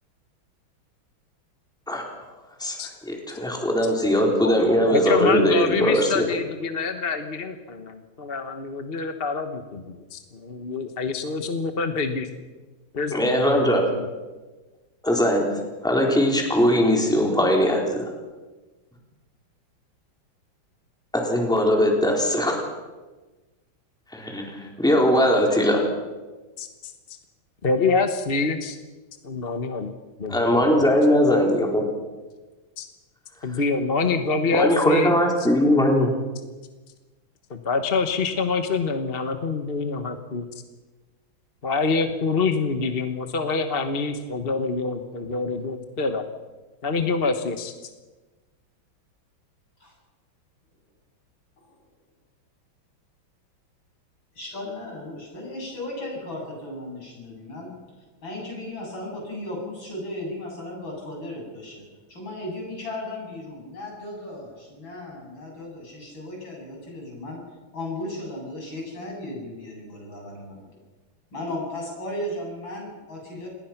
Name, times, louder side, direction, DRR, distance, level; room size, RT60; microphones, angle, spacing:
voice 1, 3.1-6.3 13.1-13.8 15.0-18.0 21.1-22.6 24.1-25.8 30.3-31.8 34.5-36.1, equal, ahead, 0 dB, 4.0 m, -20 dB
voice 2, 4.9-12.3 12.9-14.1 26.6-26.9 27.6-28.8 29.2-29.9 30.2-30.8 32.8-32.9 33.4-35.2 37.5-40.5 41.6-46.2 46.8-47.9, left 4 dB, 35° left, 7 dB, 1.3 m, -26 dB
voice 3, 54.3-70.8 71.3-73.5, left 1 dB, 70° left, -2 dB, 8.9 m, -36 dB
28.0 x 20.0 x 6.0 m, 1.2 s
omnidirectional pair, 2.2 m